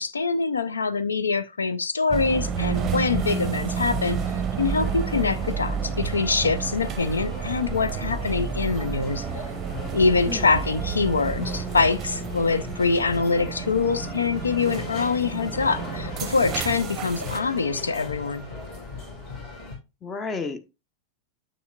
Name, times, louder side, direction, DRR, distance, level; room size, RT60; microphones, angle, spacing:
voice 1, 0.0-4.2 4.6-9.2 9.9-18.5, left 4 dB, 75° left, 0.5 m, -24 dB
sound 1, 2.1-17.4, right 7 dB, 30° right, 0.7 m, -31 dB
sound 2, 2.5-19.8, left 3 dB, 50° left, 4.2 m, -38 dB
voice 2, 10.3-10.6 20.0-20.7, left 4 dB, 20° left, 0.8 m, -32 dB
7.3 x 7.0 x 2.4 m
figure-of-eight pair, 90°, 0 cm